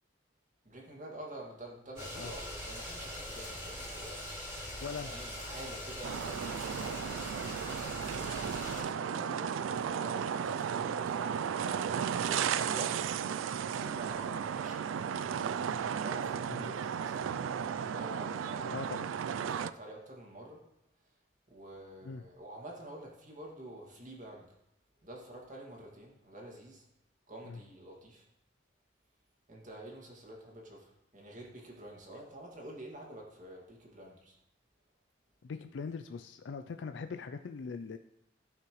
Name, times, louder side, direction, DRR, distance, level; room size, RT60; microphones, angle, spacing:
voice 1, 0.6-4.2 5.0-7.3 7.9-11.9 12.2-13.1 13.7-14.8 15.6-17.4 17.9-18.9 19.3-20.6 21.5-24.5 25.0-26.9 27.3-28.3 29.5-34.4, right 1 dB, 40° right, -1 dB, 2.1 m, -48 dB
sound 1, 2.0-8.8, left 1 dB, 15° right, 2.9 m, -42 dB
voice 2, 4.8-5.1 16.5-16.7 18.7-19.1 22.0-22.2 27.5-27.6 35.4-38.0, left 5 dB, 65° left, 8 dB, 0.4 m, -41 dB
sound 2, 6.0-19.7, right 7 dB, 90° right, 0.3 m, -34 dB
15.5 x 5.7 x 3.1 m, 0.81 s
head